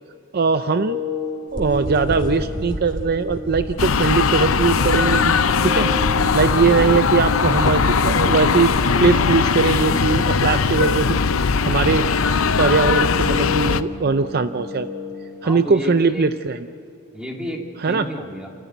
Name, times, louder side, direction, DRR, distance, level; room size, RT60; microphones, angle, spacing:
voice 1, 0.3-1.0 1.5-5.9 6.3-8.7 9.0-11.2 11.6-12.1 12.6-14.9 15.4-16.6 17.8-18.1, right 5 dB, 50° right, 11 dB, 0.5 m, -20 dB
sound 1, 0.8-16.8, left 2 dB, 80° right, 6.3 m, -33 dB
sound 2, 1.5-9.1, equal, 25° left, 3.1 m, -32 dB
sound 3, 3.8-13.8, left 5 dB, 75° left, 0.7 m, -19 dB
voice 2, 15.4-16.2 17.1-18.6, equal, 5° right, 0 dB, 2.9 m, -32 dB
29.5 x 14.0 x 9.2 m, 2.6 s
head